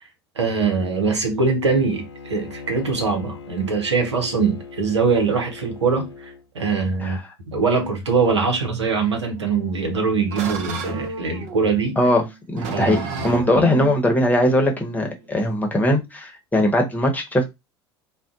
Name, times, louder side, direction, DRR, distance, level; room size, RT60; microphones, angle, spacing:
voice 1, 0.4-6.1 6.5-7.2 7.5-12.0 12.7-13.6, right 4 dB, 85° right, 0.8 m, -22 dB
Bowed string instrument, 1.9-6.4, left 5 dB, 75° left, 0.8 m, -39 dB
sound 1, 9.4-15.9, right 5 dB, 55° right, 0.7 m, -33 dB
voice 2, 12.0-17.4, left 1 dB, 10° left, 1.0 m, -20 dB
2.5 x 2.2 x 3.6 m
figure-of-eight pair, 70°, 14 cm